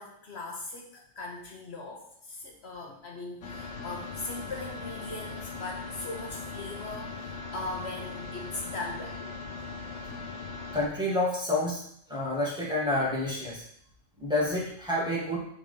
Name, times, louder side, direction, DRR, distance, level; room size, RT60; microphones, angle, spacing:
voice 1, 0.0-9.2, left 2 dB, 65° left, 0 dB, 1.1 m, -39 dB
sound 1, 3.4-10.9, left 3 dB, 85° left, 1.1 m, -39 dB
voice 2, 10.7-11.8 12.1-13.6 14.2-15.4, left 1 dB, 5° right, -7 dB, 1.9 m, -28 dB
4.9 x 4.2 x 5.3 m, 0.68 s
omnidirectional pair, 1.2 m